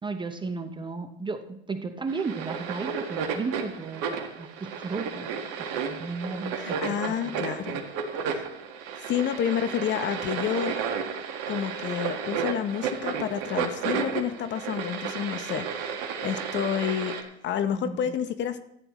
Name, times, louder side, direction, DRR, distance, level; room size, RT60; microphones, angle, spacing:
voice 1, 0.0-7.4 17.8-18.1, right 4 dB, 15° right, 8 dB, 0.7 m, -35 dB
sound 1, 2.1-17.2, right 6 dB, 50° right, 1.8 m, -32 dB
voice 2, 6.6-7.8 8.3-8.4 9.0-10.8 11.5-17.1 17.4-18.6, left 9 dB, 35° left, 11 dB, 0.9 m, -29 dB
14.0 x 10.0 x 3.1 m, 0.75 s
hypercardioid pair, 95°, 33 cm